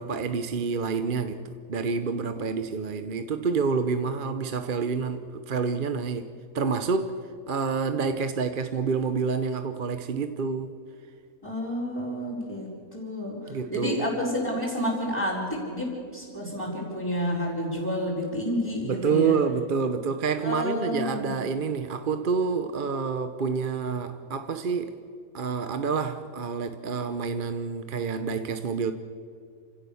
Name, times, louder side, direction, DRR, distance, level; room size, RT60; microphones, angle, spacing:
voice 1, 0.0-7.2 7.5-10.7 13.5-14.0 18.8-25.0 25.3-28.9, right 5 dB, 40° right, 9 dB, 0.9 m, -28 dB
voice 2, 11.4-13.4 13.7-19.4 20.4-21.4, equal, 15° left, -7 dB, 4.8 m, -30 dB
28.5 x 16.5 x 7.0 m, 2.3 s
omnidirectional pair, 1.5 m